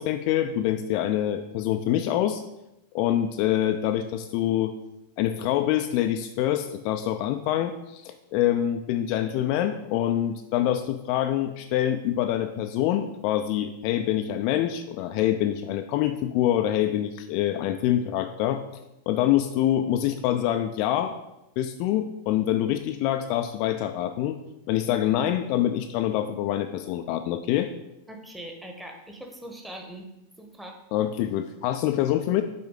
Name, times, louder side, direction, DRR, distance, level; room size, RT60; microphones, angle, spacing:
voice 1, 0.0-2.4 2.9-4.7 5.2-18.6 19.1-21.1 21.6-24.4 24.7-27.7 30.9-32.4, left 12 dB, 45° left, 7 dB, 0.3 m, -25 dB
voice 2, 28.1-30.1 30.4-30.8, right 1 dB, 5° right, 2 dB, 1.0 m, -41 dB
5.9 x 4.3 x 3.7 m, 0.89 s
figure-of-eight pair, 90°, 0 cm